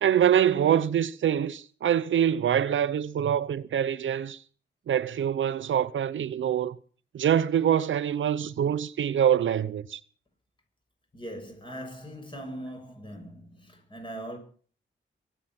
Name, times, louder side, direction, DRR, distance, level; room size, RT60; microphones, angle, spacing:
voice 1, 0.0-4.4 4.9-6.8 7.1-10.0, right 9 dB, 80° right, 0.7 m, -25 dB
voice 2, 11.1-14.4, right 1 dB, 25° left, 7.0 m, -40 dB
23.5 x 9.1 x 5.9 m
cardioid pair, 85°, 20 cm